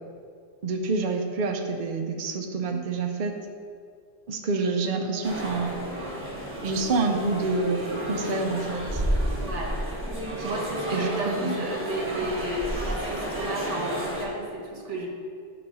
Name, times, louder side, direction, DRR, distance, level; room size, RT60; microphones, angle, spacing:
voice 1, 0.6-3.3 4.3-5.7 6.6-9.0 10.4-10.5 10.9-11.6, right 3 dB, 50° right, 3 dB, 0.7 m, -28 dB
Wind instrument woodwind instrument, 4.9-11.5, left 3 dB, 80° left, 1.6 m, -43 dB
sound 1, 5.2-14.2, right 1 dB, 10° right, 1.3 m, -31 dB
voice 2, 9.4-9.7 10.4-15.1, right 1 dB, 85° right, 0 dB, 1.6 m, -33 dB
9.0 x 4.2 x 5.5 m, 2.2 s
omnidirectional pair, 1.2 m